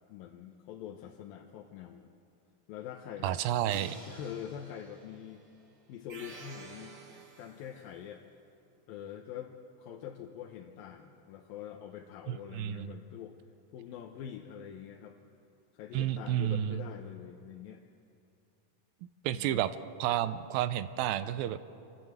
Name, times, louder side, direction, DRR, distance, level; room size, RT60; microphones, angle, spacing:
voice 1, 0.1-2.1 2.7-3.4 4.1-5.4 5.9-6.9 7.4-8.2 8.9-13.4 13.7-15.2 15.7-17.8 19.3-19.7, left 9 dB, 80° left, 1 dB, 2.7 m, -44 dB
voice 2, 3.2-4.0 12.3-12.9 15.9-16.8 19.2-19.7 20.0-21.7, right 12 dB, 80° right, 13 dB, 2.3 m, -31 dB
Crash cymbal, 3.7-6.6, equal, 15° right, 3.6 m, -53 dB
sound 1, 6.1-8.0, right 4 dB, 50° right, 0.9 m, -50 dB
28.0 x 12.5 x 8.1 m, 2.6 s
omnidirectional pair, 4.3 m